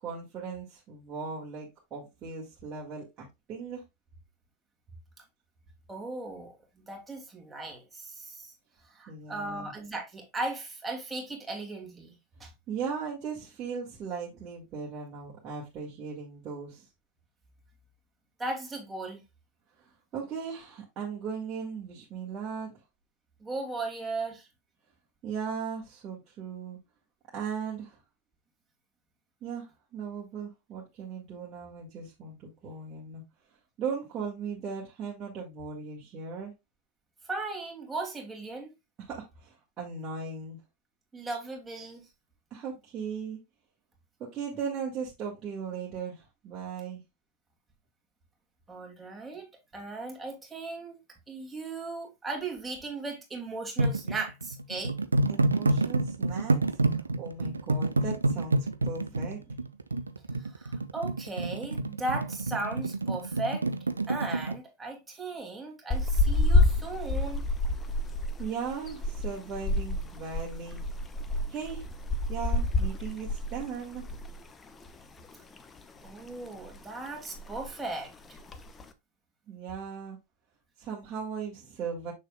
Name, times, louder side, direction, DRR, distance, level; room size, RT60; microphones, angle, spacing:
voice 1, 0.0-3.8 9.1-9.7 12.7-16.9 20.1-22.8 25.2-26.8 27.3-28.0 29.4-33.2 33.8-36.5 39.1-40.6 42.5-43.4 44.2-47.0 55.3-56.8 57.2-59.5 68.4-70.8 71.5-71.9 72.3-74.0 79.5-80.2 80.8-82.1, right 6 dB, 30° right, 1.8 m, -37 dB
voice 2, 5.9-8.5 8.8-12.5 18.4-19.2 23.4-24.5 37.2-38.7 41.1-42.1 48.7-49.5 49.7-54.9 60.4-63.6 64.1-67.5 76.0-78.4, right 2 dB, 10° right, 2.3 m, -37 dB
sound 1, 53.8-64.6, right 2 dB, 80° right, 0.5 m, -28 dB
sound 2, 65.9-74.4 74.7-74.9 75.3-76.1 76.5-76.8 77.1-77.2 77.3-77.8 78.3-78.8, left 2 dB, 20° left, 0.8 m, -28 dB
6.6 x 6.5 x 2.2 m
figure-of-eight pair, 90°, 0 cm